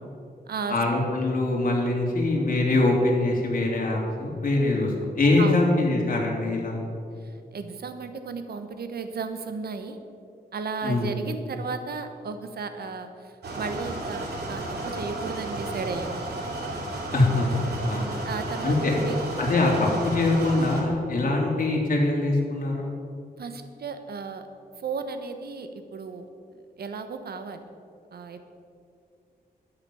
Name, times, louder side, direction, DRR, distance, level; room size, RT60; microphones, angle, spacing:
voice 1, 0.7-6.8 10.8-11.1 17.1-18.2 18.6-18.9 19.4-22.9, left 2 dB, 55° left, -1 dB, 3.3 m, -23 dB
voice 2, 7.2-10.0 10.5-16.3 18.2-19.2 23.4-24.5 24.8-26.3 26.8-27.6 28.1-28.4, right 5 dB, 75° right, 8 dB, 1.2 m, -34 dB
sound 1, 13.4-20.8, right 2 dB, 90° right, 2.8 m, -33 dB
12.5 x 9.6 x 7.1 m, 2.4 s
wide cardioid pair, 115°, 16 cm